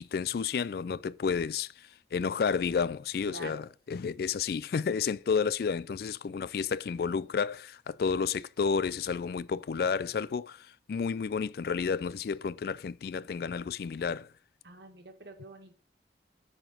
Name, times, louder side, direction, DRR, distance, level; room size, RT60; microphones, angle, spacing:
voice 1, 0.0-14.3, left 6 dB, 55° left, 0.3 m, -31 dB
voice 2, 3.3-3.6 14.6-15.7, right 2 dB, 75° right, 1.8 m, -46 dB
7.2 x 5.0 x 6.2 m
head